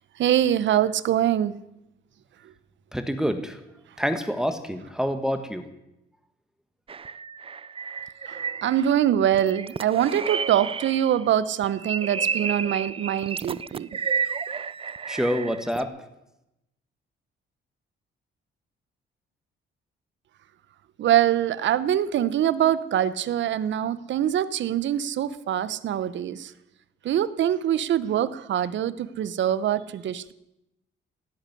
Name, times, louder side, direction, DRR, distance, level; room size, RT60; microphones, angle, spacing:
voice 1, 0.2-1.6 2.4-2.5 8.3-13.9 21.0-26.5 27.0-30.3, right 10 dB, 70° right, 17 dB, 0.9 m, -24 dB
voice 2, 2.9-3.6 4.0-5.7 15.1-15.9, equal, 5° right, 8 dB, 1.6 m, -27 dB
sound 1, 6.9-9.0 9.3-11.2 11.6-15.8, right 6 dB, 30° right, 0.5 m, -31 dB
16.5 x 8.5 x 9.8 m, 0.90 s
cardioid pair, 90°, 20 cm